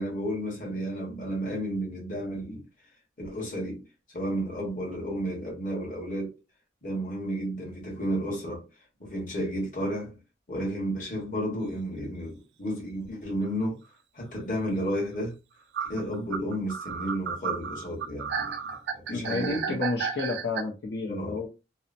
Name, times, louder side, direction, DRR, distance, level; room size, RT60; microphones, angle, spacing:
voice 1, 0.0-2.6 3.2-3.8 4.1-6.4 6.8-8.6 9.0-10.2 10.5-13.8 14.1-15.4 15.9-18.7 19.1-19.8 21.0-21.4, equal, 45° left, 1.2 m, -32 dB
sound 1, 13.4-13.5 14.9-15.0 15.7-20.6, right 6 dB, 75° right, 0.3 m, -33 dB
voice 2, 19.1-21.5, left 3 dB, 70° left, 0.6 m, -31 dB
2.9 x 2.0 x 2.5 m
head